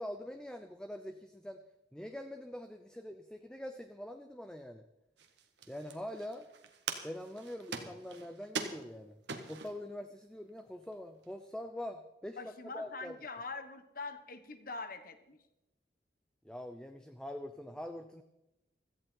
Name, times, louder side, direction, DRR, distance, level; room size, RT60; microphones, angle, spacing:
voice 1, 0.0-1.6 1.9-4.8 5.7-6.5 7.0-9.2 9.4-13.2 16.4-18.2, left 1 dB, 5° left, 7 dB, 0.6 m, -44 dB
sound 1, 5.2-9.8 10.5-10.6 10.8-11.3, right 5 dB, 80° right, 1.6 m, -43 dB
voice 2, 12.4-15.4, left 3 dB, 55° left, 10 dB, 1.3 m, -44 dB
16.5 x 14.0 x 4.5 m, 0.92 s
head